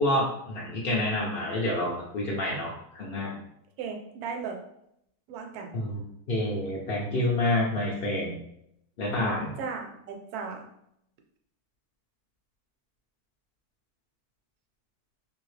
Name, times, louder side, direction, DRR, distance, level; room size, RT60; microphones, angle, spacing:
voice 1, 0.0-3.4 5.7-6.0 6.3-8.4 9.0-9.5, left 1 dB, 65° left, -4 dB, 0.5 m, -28 dB
voice 2, 3.8-4.6 5.3-5.8 9.6-10.6, right 5 dB, 75° right, 3 dB, 1.1 m, -36 dB
2.7 x 2.6 x 3.1 m, 0.76 s
omnidirectional pair, 1.6 m